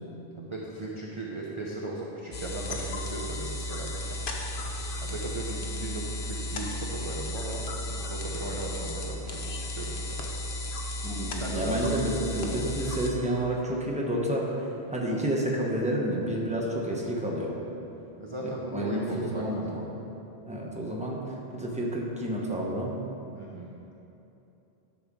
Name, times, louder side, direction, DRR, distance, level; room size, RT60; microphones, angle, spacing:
voice 1, 0.4-4.2 5.0-10.2 11.3-11.7 18.2-19.8 23.3-23.7, right 2 dB, 30° right, -3 dB, 0.7 m, -37 dB
sound 1, 2.3-13.1, left 1 dB, 55° left, 1.0 m, -34 dB
voice 2, 11.0-17.6 18.4-19.8 20.4-23.0, right 1 dB, 5° right, -3 dB, 1.0 m, -30 dB
10.5 x 4.2 x 6.2 m, 2.9 s
omnidirectional pair, 1.1 m